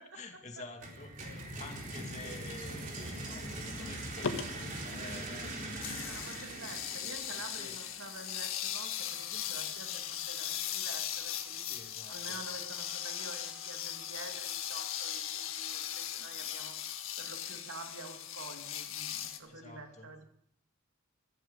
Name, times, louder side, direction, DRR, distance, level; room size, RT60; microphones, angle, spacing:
voice 1, 0.0-6.0 7.3-7.8 11.6-12.4 19.5-20.1, left 3 dB, 35° left, 5 dB, 2.0 m, -50 dB
sound 1, 0.8-8.6, right 1 dB, 40° right, 4.0 m, -42 dB
voice 2, 1.3-1.6 6.1-11.7 12.1-16.8 17.2-20.2, right 3 dB, 80° right, 5 dB, 2.5 m, -48 dB
sound 2, 4.2-4.4 5.8-19.4, left 9 dB, 80° left, 1.6 m, -38 dB
14.5 x 14.5 x 6.5 m, 0.70 s
head